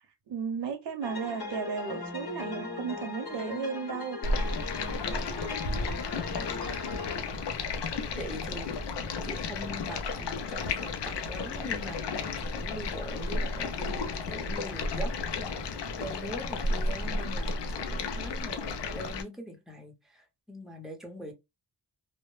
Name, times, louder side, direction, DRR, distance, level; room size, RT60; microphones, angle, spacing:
voice 1, 0.3-4.2, right 6 dB, 90° right, 0.6 m, -34 dB
sound 1, 1.0-7.2, left 3 dB, 65° left, 0.9 m, -38 dB
Stream, 4.2-19.2, left 3 dB, 85° left, 0.6 m, -33 dB
voice 2, 6.9-7.5 8.1-8.8 9.0-21.3, equal, ahead, 0.6 m, -43 dB
2.1 x 2.0 x 3.0 m
wide cardioid pair, 115°, 40 cm